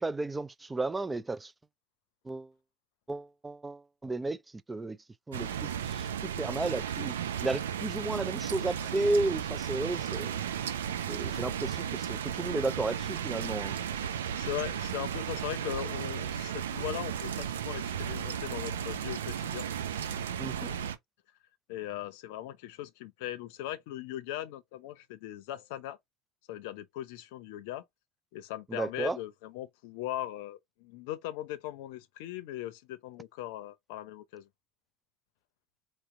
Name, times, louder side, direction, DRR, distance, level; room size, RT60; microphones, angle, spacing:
voice 1, 0.0-1.5 2.3-2.5 3.1-4.4 4.7-5.0 5.3-7.1 7.4-10.3 11.1-13.8 20.4-20.7 28.7-29.2, right 2 dB, 15° right, 0.5 m, -33 dB
sound 1, 5.3-21.0, right 8 dB, 85° right, 0.5 m, -34 dB
voice 2, 14.4-19.7 21.7-26.0 26.5-27.8 28.3-34.5, left 13 dB, 70° left, 0.6 m, -39 dB
4.4 x 2.9 x 2.6 m
hypercardioid pair, 70°, 0 cm